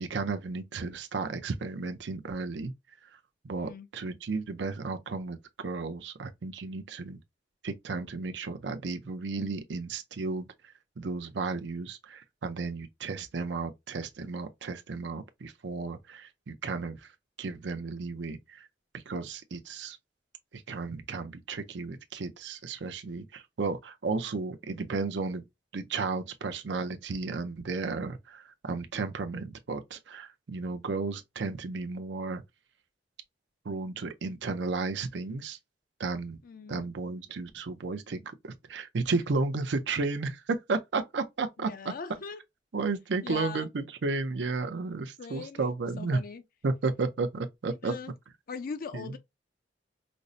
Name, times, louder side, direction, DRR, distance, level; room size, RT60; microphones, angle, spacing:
voice 1, 0.0-2.7 3.4-7.2 7.6-10.5 11.0-17.1 17.4-18.7 18.9-20.0 20.5-25.4 25.7-32.4 33.6-35.6 36.0-36.4 36.7-41.9 42.7-46.2 46.6-47.9 48.9-49.1, right 3 dB, 70° right, 0.5 m, -33 dB
voice 2, 3.5-3.9 36.4-36.9 41.6-42.4 43.2-43.7 45.2-45.6 46.0-46.4 47.8-48.1 48.5-49.2, left 5 dB, 50° left, 0.4 m, -40 dB
5.1 x 2.0 x 2.5 m
head